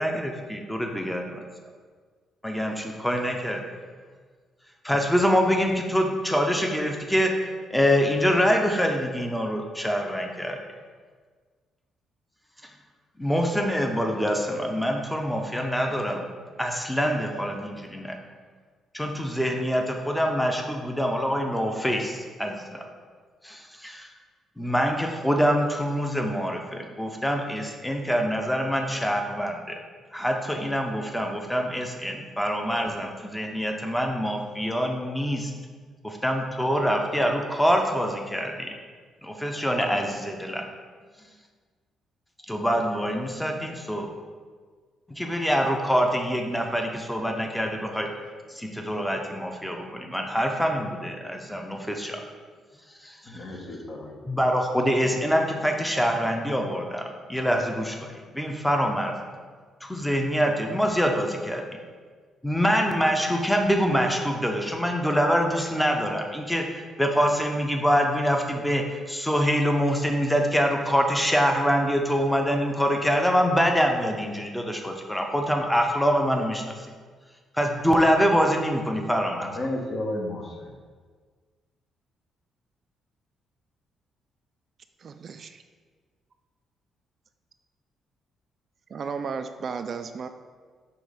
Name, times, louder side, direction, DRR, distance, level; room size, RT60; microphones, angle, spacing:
voice 1, 0.0-1.4 2.4-3.6 4.8-7.3 7.7-10.6 13.2-16.3 16.6-18.2 18.9-22.8 23.4-24.1 24.6-29.7 30.1-35.5 36.0-38.7 39.2-40.6 42.5-44.1 45.2-48.1 48.5-52.2 53.0-53.4 54.2-57.0 57.3-58.1 58.3-59.1 59.8-61.6 62.4-76.6 77.6-79.5, equal, 5° left, 2 dB, 0.7 m, -25 dB
voice 2, 53.3-54.2 79.4-80.7, left 1 dB, 45° left, 1 dB, 1.1 m, -33 dB
voice 3, 85.0-85.5 88.9-90.3, right 5 dB, 50° right, 8 dB, 0.3 m, -33 dB
6.1 x 3.0 x 5.0 m, 1.5 s
cardioid pair, 90°, 0 cm